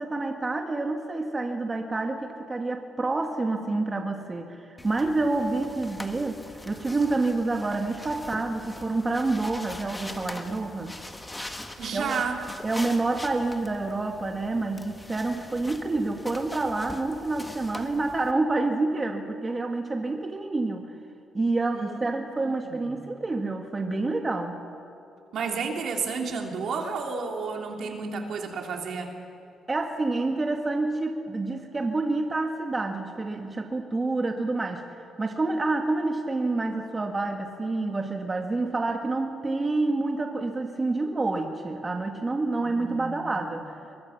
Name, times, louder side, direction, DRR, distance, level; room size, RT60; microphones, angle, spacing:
voice 1, 0.0-6.4 6.7-11.0 11.9-12.1 12.6-20.9 21.3-24.6 29.7-34.8 35.2-43.6, right 2 dB, 25° right, 3 dB, 1.7 m, -28 dB
sound 1, 4.8-18.3, left 1 dB, 15° left, 1.8 m, -42 dB
voice 2, 11.8-12.4 21.7-22.1 22.4-23.1 25.3-29.1 42.6-43.4, right 5 dB, 65° right, 2 dB, 3.1 m, -32 dB
23.5 x 22.5 x 5.9 m, 2.6 s
cardioid pair, 90°, 0 cm